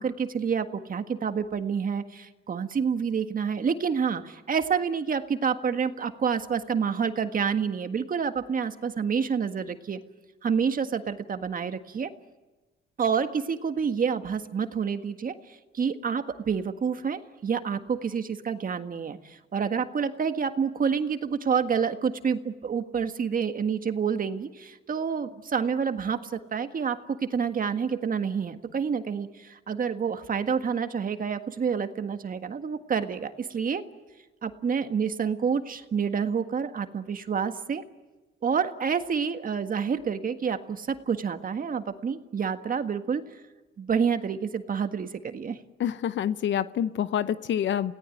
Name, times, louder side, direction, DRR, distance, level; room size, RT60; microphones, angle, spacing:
voice 1, 0.0-10.0 10.4-12.1 13.0-33.8 34.4-37.8 38.4-43.2 43.8-45.6, right 6 dB, 45° right, 8 dB, 1.7 m, -28 dB
voice 2, 45.8-47.9, left 9 dB, 65° left, 13 dB, 0.9 m, -27 dB
29.0 x 18.0 x 9.3 m, 1.2 s
cardioid pair, 90°, 20 cm